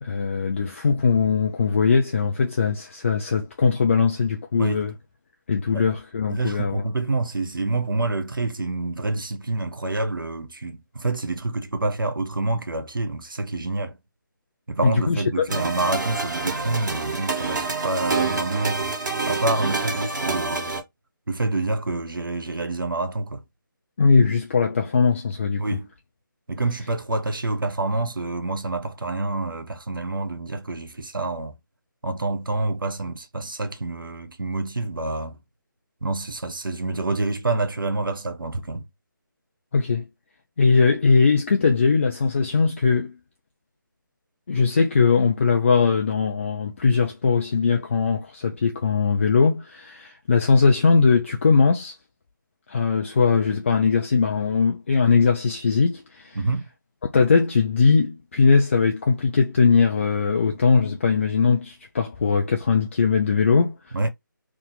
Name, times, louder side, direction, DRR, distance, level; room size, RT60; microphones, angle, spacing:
voice 1, 0.0-4.9 5.5-6.8 14.8-15.4 24.0-25.6 39.7-40.0 40.6-43.2 44.5-52.0 52.7-56.4 57.1-63.9, left 5 dB, 35° left, 0.5 m, -20 dB
voice 2, 6.3-14.0 14.7-18.9 19.3-20.8 21.3-23.4 25.6-25.9 26.5-31.5 32.0-35.4 36.0-38.8 56.4-56.7 63.9-64.1, right 2 dB, 80° right, 0.8 m, -27 dB
sound 1, 15.5-20.8, right 3 dB, 60° right, 1.5 m, -27 dB
2.8 x 2.4 x 3.8 m
figure-of-eight pair, 155°, 11 cm